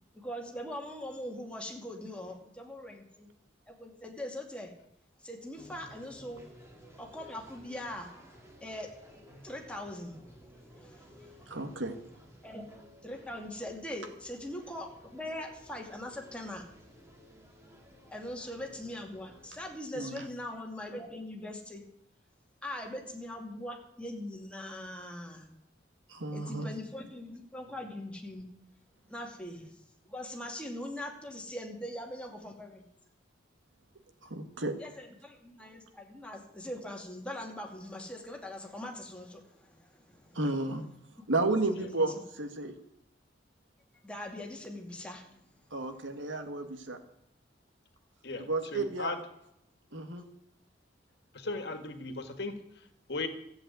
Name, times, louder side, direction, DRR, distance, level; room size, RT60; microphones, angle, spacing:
voice 1, 0.1-3.3 3.7-4.7 5.2-6.4 7.0-8.1 8.6-8.9 9.4-10.2 10.5-11.6 12.4-12.7 13.0-16.6 18.1-21.8 22.6-25.5 26.3-28.5 29.1-29.8 30.1-32.8 34.8-40.4 41.7-42.0 44.0-45.4, left 1 dB, 5° left, 0 dB, 2.5 m, -41 dB
sound 1, 5.6-19.8, equal, 15° right, 2.5 m, -56 dB
voice 2, 11.5-11.9 19.9-20.2 26.1-26.7 34.2-34.7 40.3-40.8 41.3-42.7 45.7-47.0 48.4-49.1 49.9-50.2, right 2 dB, 85° right, 7 dB, 1.8 m, -32 dB
voice 3, 48.2-49.2 51.3-53.3, left 3 dB, 60° left, 7 dB, 1.8 m, -37 dB
14.0 x 7.9 x 9.3 m, 0.76 s
head